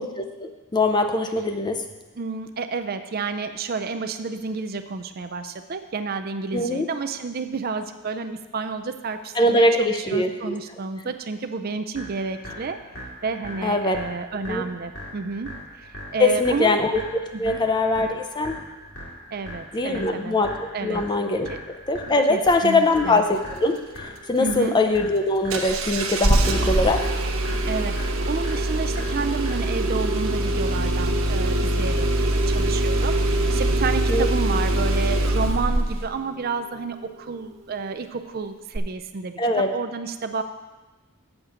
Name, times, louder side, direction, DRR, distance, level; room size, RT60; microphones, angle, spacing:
voice 1, 0.0-1.8 6.5-6.9 9.4-10.6 13.6-14.0 14.5-14.6 16.2-17.0 17.4-18.6 19.7-20.5 20.8-21.5 21.9-27.1 34.1-34.3 39.4-39.7, left 2 dB, 20° left, 6 dB, 0.5 m, -22 dB
voice 2, 2.2-12.8 13.2-16.8 17.3-17.6 19.3-20.4 20.7-21.0 21.5-21.6 22.1-23.2 24.4-24.8 27.7-40.4, right 4 dB, 45° right, 9 dB, 0.4 m, -30 dB
sound 1, 11.9-29.9, left 1 dB, 60° left, 2.3 m, -40 dB
Engine starting, 25.5-36.1 38.7-38.8, right 1 dB, 70° right, 0.9 m, -23 dB
8.0 x 7.2 x 4.9 m, 1.2 s
head